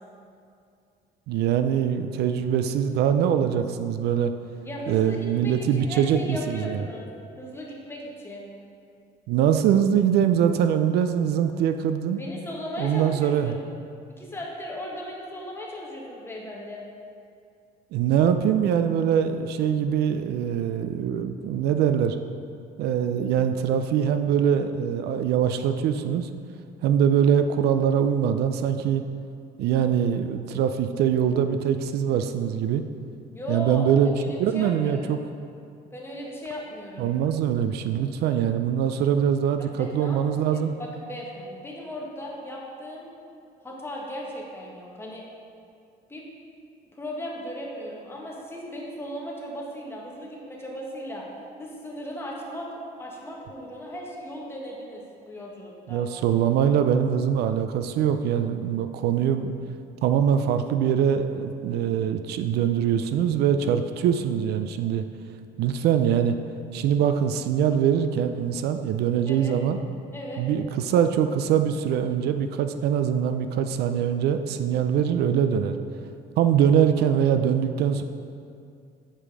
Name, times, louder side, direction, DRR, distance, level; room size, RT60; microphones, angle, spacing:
voice 1, 1.3-4.3 4.9-6.8 9.3-12.2 12.8-13.5 17.9-22.2 22.8-26.3 26.8-29.0 29.6-32.8 33.5-34.1 34.4-35.2 37.0-40.7 55.9-59.5 60.0-65.1 65.6-66.4 66.7-69.8 70.4-75.8 76.4-78.0, right 8 dB, 75° right, 8 dB, 0.4 m, -23 dB
voice 2, 4.6-7.1 7.4-8.5 12.2-13.6 14.1-16.9 33.3-33.9 34.2-35.2 35.9-37.1 39.8-40.2 40.5-43.1 43.6-45.2 46.1-46.2 46.9-51.3 51.6-52.7 53.0-56.1 69.3-69.6 70.1-70.4, equal, 15° left, -3 dB, 1.6 m, -37 dB
7.6 x 5.1 x 4.8 m, 2.4 s
cardioid pair, 110°, 17 cm